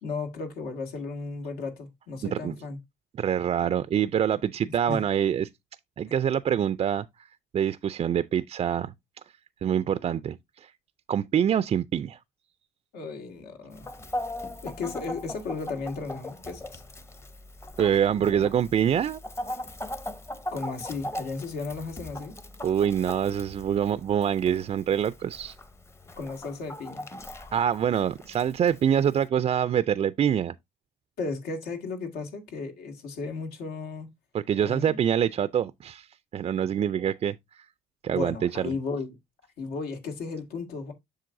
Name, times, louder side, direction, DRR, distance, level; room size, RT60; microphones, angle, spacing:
voice 1, 0.0-2.8 4.7-5.0 12.9-14.0 14.6-16.8 18.3-18.5 20.5-22.4 26.2-27.1 31.2-34.1 34.6-35.0 38.1-39.2 39.6-40.9, left 4 dB, 80° left, 1.9 m, -35 dB
voice 2, 2.2-2.5 3.2-5.5 6.0-7.3 7.5-8.9 9.6-10.7 11.1-12.2 17.8-19.2 22.6-25.5 27.5-30.5 34.3-36.1 36.3-37.7 38.0-38.7, right 9 dB, 35° right, 0.4 m, -25 dB
Chicken rooster, 13.7-29.3, left 1 dB, 15° left, 0.8 m, -40 dB
7.6 x 6.4 x 2.6 m
cardioid pair, 110°, 17 cm